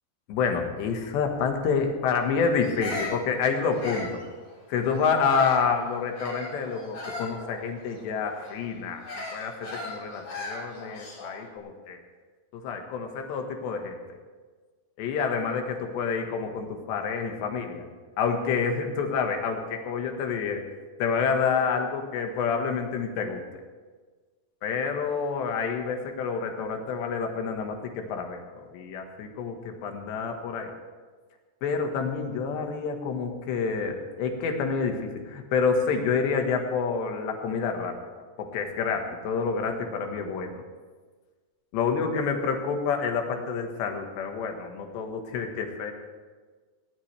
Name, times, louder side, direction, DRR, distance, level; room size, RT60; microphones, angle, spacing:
voice 1, 0.3-4.2 4.7-9.1 9.3-12.0 12.5-14.0 15.0-17.9 18.2-20.6 21.0-23.4 24.6-30.7 31.6-37.9 38.4-40.5 41.7-45.9, left 5 dB, 80° left, 4 dB, 3.8 m, -28 dB
Bird vocalization bird call bird song, 2.6-5.7 6.1-11.4, left 2 dB, 50° left, 5.0 m, -38 dB
18.5 x 18.0 x 3.4 m, 1.4 s
omnidirectional pair, 4.9 m